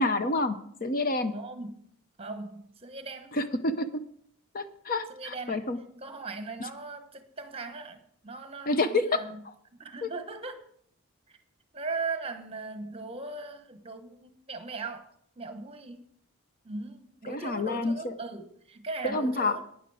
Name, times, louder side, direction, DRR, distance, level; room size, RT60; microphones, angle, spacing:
voice 1, 0.0-1.3 3.3-3.9 4.5-5.8 8.7-9.2 10.0-10.1 17.3-18.1 19.0-19.6, left 2 dB, 40° left, 10 dB, 0.7 m, -28 dB
voice 2, 1.3-1.8 2.2-3.3 5.1-5.6 6.0-9.4 9.8-10.6 11.3-11.4 11.7-15.0 15.4-16.0 16.6-19.7, right 3 dB, 25° right, 8 dB, 1.1 m, -39 dB
12.0 x 9.7 x 4.8 m, 0.65 s
head